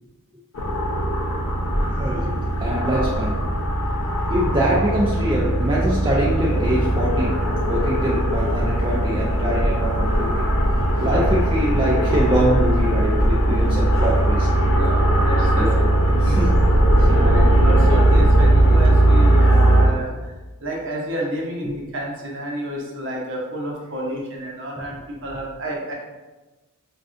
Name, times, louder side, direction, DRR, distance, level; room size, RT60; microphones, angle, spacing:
sound 1, 0.5-19.9, right 1 dB, 60° left, 0.7 m, -19 dB
voice 1, 2.0-3.5 4.3-10.5 11.0-14.5 15.6-15.8 16.2-16.6 17.0-17.5 21.6-21.7, right 1 dB, 25° right, -6 dB, 0.4 m, -24 dB
voice 2, 14.7-16.5 17.1-25.9, right 1 dB, 55° right, -2 dB, 0.8 m, -30 dB
5.2 x 2.4 x 2.5 m, 1.2 s
head